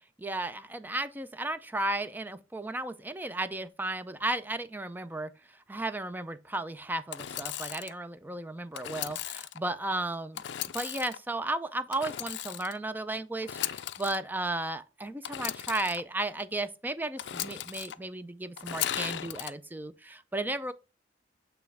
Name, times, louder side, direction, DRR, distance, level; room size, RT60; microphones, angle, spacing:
voice 1, 0.2-5.3 5.7-10.4 10.7-20.7, right 2 dB, 10° right, 0.4 m, -34 dB
Engine / Sawing, 7.1-7.9 8.7-9.6 10.4-11.2 11.9-12.8 13.4-14.2 15.2-16.0 17.2-18.0 18.6-19.5, left 12 dB, 65° left, 0.4 m, -36 dB
8.5 x 3.4 x 3.4 m
head